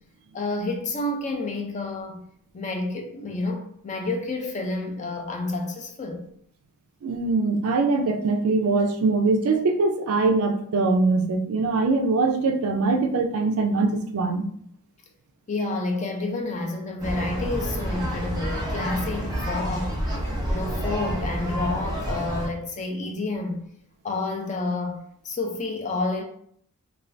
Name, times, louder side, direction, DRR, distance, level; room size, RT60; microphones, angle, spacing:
voice 1, 0.3-2.2 2.5-6.2 15.5-20.0 20.5-23.6 24.0-26.2, left 2 dB, 35° left, 0.4 m, -29 dB
voice 2, 7.0-14.4, right 3 dB, 70° right, 0.4 m, -22 dB
sound 1, 17.0-22.5, equal, 20° right, 0.7 m, -29 dB
2.5 x 2.3 x 3.3 m
head